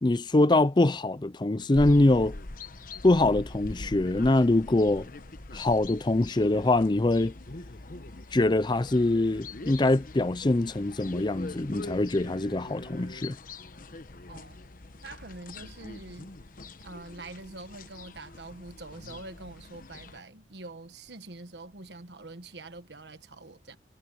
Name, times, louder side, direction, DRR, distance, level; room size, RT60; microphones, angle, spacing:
voice 1, 0.0-2.3 3.0-5.1 5.5-7.3 8.3-13.4, left 2 dB, 25° left, 0.5 m, -24 dB
sound 1, 1.7-20.2, left 2 dB, 50° left, 1.1 m, -43 dB
voice 2, 14.3-14.6 15.0-16.3 16.8-23.8, right 2 dB, 75° right, 1.4 m, -45 dB
head